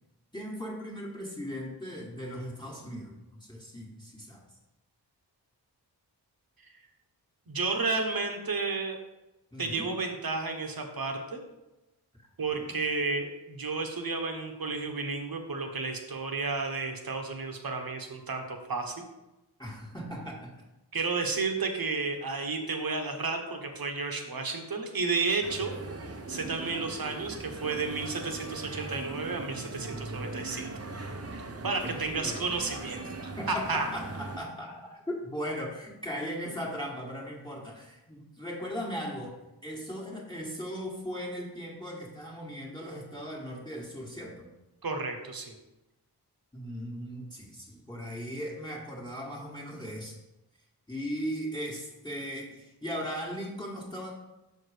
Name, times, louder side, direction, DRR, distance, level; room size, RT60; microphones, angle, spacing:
voice 1, 0.3-4.4 9.5-9.8 12.5-12.7 19.6-20.5 31.8-32.4 33.4-44.5 46.5-50.2 50.9-54.1, equal, 10° left, -3 dB, 1.4 m, -38 dB
voice 2, 7.5-9.0 9.6-11.4 12.4-19.0 20.9-25.7 26.3-30.7 31.6-33.9 44.8-45.5, right 4 dB, 55° right, 4 dB, 1.1 m, -32 dB
sound 1, 25.4-34.4, right 2 dB, 35° right, 0.7 m, -40 dB
5.8 x 4.6 x 5.0 m, 0.99 s
wide cardioid pair, 55°, 42 cm